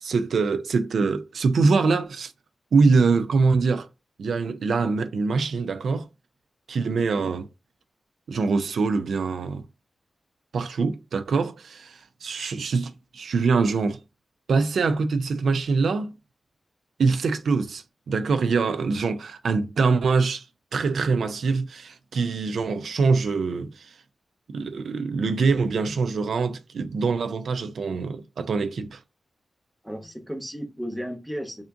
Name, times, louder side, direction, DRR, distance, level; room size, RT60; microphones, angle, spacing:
voice 1, 0.0-2.3 2.7-3.9 4.2-6.1 6.7-7.5 8.3-9.6 10.5-14.0 14.5-16.1 17.0-20.5 20.7-24.0 24.5-29.0, right 4 dB, 85° right, 0.3 m, -24 dB
voice 2, 29.8-31.6, equal, ahead, 0.8 m, -34 dB
3.4 x 2.5 x 3.6 m
wide cardioid pair, 95°, 0 cm